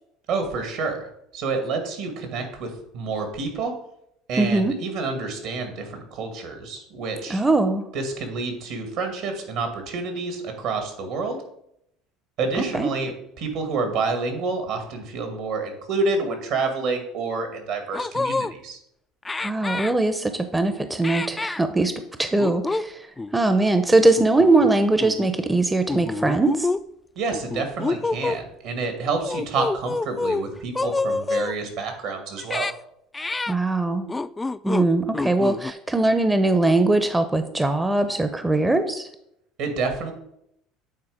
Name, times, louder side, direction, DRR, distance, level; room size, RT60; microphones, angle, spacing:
voice 1, 0.3-3.8 4.3-7.4 7.9-11.4 12.4-18.8 27.2-32.7 39.6-40.1, right 4 dB, 70° right, 5 dB, 2.0 m, -28 dB
voice 2, 4.4-4.7 7.3-7.8 12.7-12.9 19.4-23.1 23.3-26.7 33.5-34.1 34.6-39.1, right 2 dB, 15° right, 9 dB, 0.6 m, -21 dB
sound 1, 17.4-17.5 17.9-18.5 19.2-19.9 21.0-21.6 22.4-22.8 23.2-23.3 24.2-24.7 25.0-25.3 25.9-26.8 27.3-28.4 29.2-30.5 30.7-31.5 32.4-32.7 33.1-33.5 34.1-34.9 35.1-35.7, left 3 dB, 15° left, 0.3 m, -27 dB
8.8 x 3.9 x 5.0 m, 0.76 s
hypercardioid pair, 80°, 0 cm